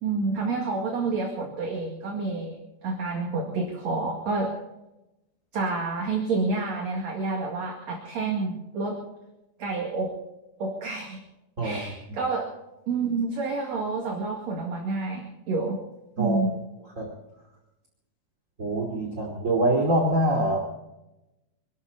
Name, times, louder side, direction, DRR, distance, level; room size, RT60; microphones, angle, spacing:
voice 1, 0.0-4.6 5.5-9.1 9.6-10.2 10.6-11.2 11.6-12.5 12.9-15.8 16.2-16.6, right 3 dB, 50° right, 2 dB, 3.1 m, -29 dB
voice 2, 18.6-20.6, right 1 dB, 25° right, 0 dB, 2.4 m, -24 dB
26.0 x 12.5 x 4.1 m, 0.95 s
omnidirectional pair, 4.3 m